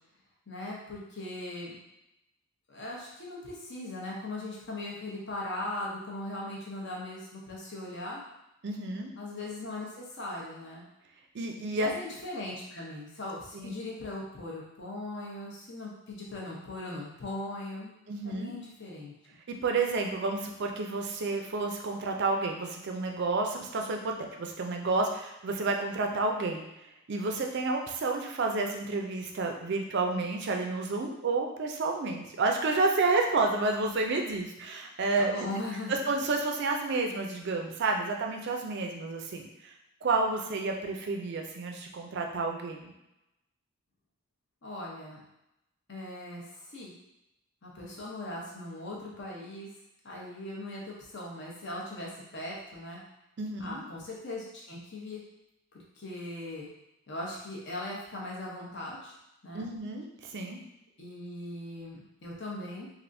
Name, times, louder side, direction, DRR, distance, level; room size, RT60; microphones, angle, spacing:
voice 1, 0.5-1.8 2.7-8.2 9.2-10.8 11.8-19.1 35.2-36.0 44.6-45.2 45.9-46.9 47.6-49.7 50.0-53.0 53.6-55.2 55.7-56.7 57.1-59.2 59.4-59.7 61.0-62.9, left 1 dB, 50° left, -3 dB, 0.8 m, -39 dB
voice 2, 8.6-9.1 11.3-11.9 13.5-13.7 18.1-18.5 19.6-26.6 27.1-35.5 36.1-39.7 40.0-42.9 53.4-53.8 59.5-60.6, right 3 dB, 50° right, 2 dB, 0.4 m, -30 dB
3.3 x 2.5 x 2.6 m, 0.87 s
head